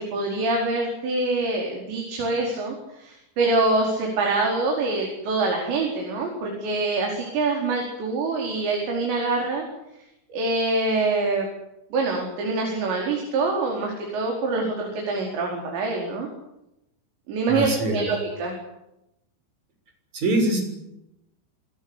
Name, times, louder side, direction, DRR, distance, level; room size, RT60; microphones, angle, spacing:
voice 1, 0.0-9.6 10.3-11.5 11.9-16.3 17.3-18.6, right 3 dB, 65° right, 0 dB, 7.0 m, -25 dB
voice 2, 17.5-18.1 20.1-20.6, right 1 dB, 40° right, 4 dB, 7.6 m, -23 dB
27.5 x 19.5 x 8.3 m, 0.86 s
omnidirectional pair, 5.5 m